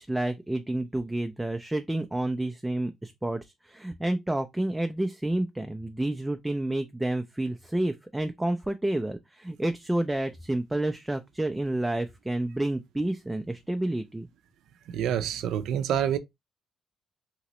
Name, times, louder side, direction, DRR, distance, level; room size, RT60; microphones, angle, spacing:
voice 1, 0.0-14.3, right 1 dB, 10° right, 0.4 m, -29 dB
voice 2, 14.9-16.2, right 9 dB, 80° right, 0.4 m, -27 dB
2.9 x 2.8 x 3.0 m
cardioid pair, 90°, 0 cm